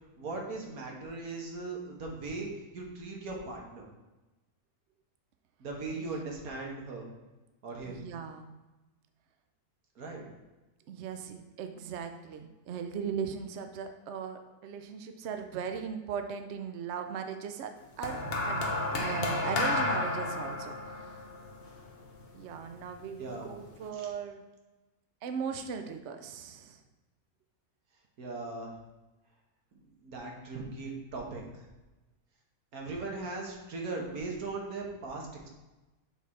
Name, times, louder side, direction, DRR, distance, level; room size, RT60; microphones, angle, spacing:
voice 1, 0.2-3.8 5.6-7.0 7.6-8.0 9.9-10.2 23.2-23.5 23.9-24.1 28.2-28.7 30.0-31.6 32.7-35.5, right 3 dB, 85° right, 0 dB, 1.7 m, -39 dB
voice 2, 7.8-8.5 10.9-18.2 18.4-18.6 18.9-21.2 22.3-24.4 25.2-26.8, right 6 dB, 65° right, 6 dB, 0.7 m, -38 dB
sound 1, 18.0-22.5 23.4-23.6, left 2 dB, 50° left, 1.0 m, -32 dB
7.2 x 4.0 x 4.2 m, 1.1 s
omnidirectional pair, 1.5 m